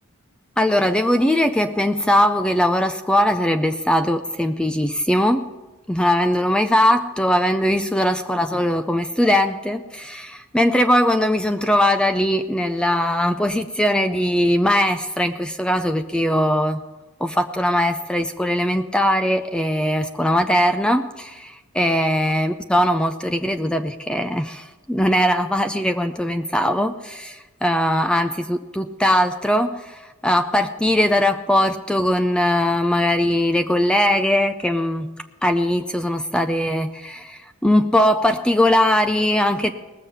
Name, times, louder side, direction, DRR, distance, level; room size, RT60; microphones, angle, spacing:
voice 1, 0.6-5.5 5.9-16.8 17.2-35.1 35.4-39.7, left 1 dB, 5° left, 8 dB, 0.4 m, -20 dB
19.0 x 7.3 x 5.5 m, 1.1 s
head